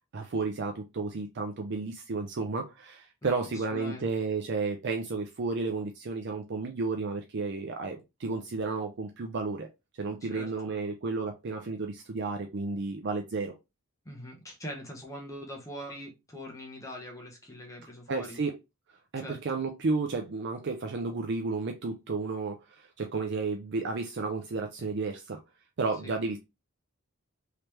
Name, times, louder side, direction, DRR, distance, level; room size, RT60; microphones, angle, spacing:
voice 1, 0.1-9.7 10.0-13.5 18.1-18.5 19.1-25.4 25.8-26.4, right 3 dB, 50° right, 0.5 m, -32 dB
voice 2, 3.2-4.1 10.2-10.5 14.0-18.4 19.1-19.6 26.0-26.2, left 1 dB, 15° left, 0.8 m, -42 dB
3.3 x 2.9 x 3.2 m
head